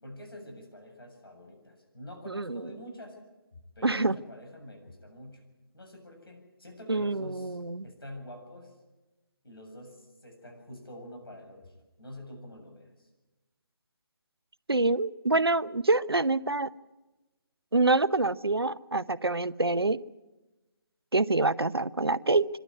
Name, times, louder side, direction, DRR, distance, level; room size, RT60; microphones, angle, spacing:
voice 1, 0.0-3.2 3.8-5.4 5.7-8.7 9.4-13.1, left 1 dB, 70° left, 3 dB, 7.4 m, -46 dB
voice 2, 2.3-2.6 3.8-4.1 6.9-7.8 14.7-16.7 17.7-20.0 21.1-22.5, right 2 dB, 85° right, 17 dB, 0.7 m, -26 dB
25.0 x 12.5 x 9.7 m, 1.1 s
figure-of-eight pair, 150°, 13 cm